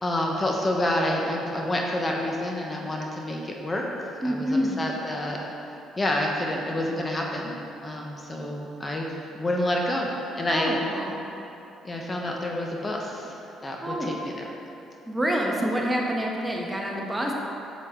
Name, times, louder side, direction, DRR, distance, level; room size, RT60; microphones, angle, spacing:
voice 1, 0.0-5.4 6.0-7.6 7.8-10.1 10.4-10.8 11.8-14.5, left 1 dB, 25° left, 0 dB, 1.1 m, -28 dB
voice 2, 4.2-4.8 10.5-11.1 13.8-14.1 15.1-17.3, equal, 15° right, -1 dB, 1.2 m, -27 dB
8.9 x 7.4 x 3.8 m, 2.8 s
supercardioid pair, 80°, 0 cm